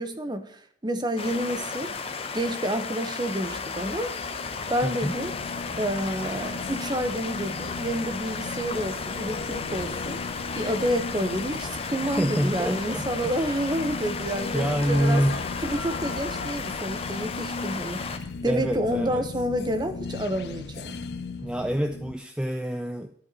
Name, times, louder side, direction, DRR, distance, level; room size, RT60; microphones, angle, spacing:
voice 1, 0.0-1.9 2.3-4.4 4.7-5.3 5.8-10.2 10.5-15.2 15.6-21.0, right 1 dB, 25° right, 9 dB, 0.9 m, -29 dB
sound 1, 1.2-18.2, left 5 dB, 30° left, 0.8 m, -34 dB
sound 2, 3.3-22.1, left 3 dB, 60° left, 0.6 m, -37 dB
voice 2, 4.8-5.2 12.0-13.5 14.5-15.4 18.4-19.2 21.4-23.1, equal, 5° right, 6 dB, 0.4 m, -27 dB
12.0 x 4.5 x 8.2 m, 0.64 s
head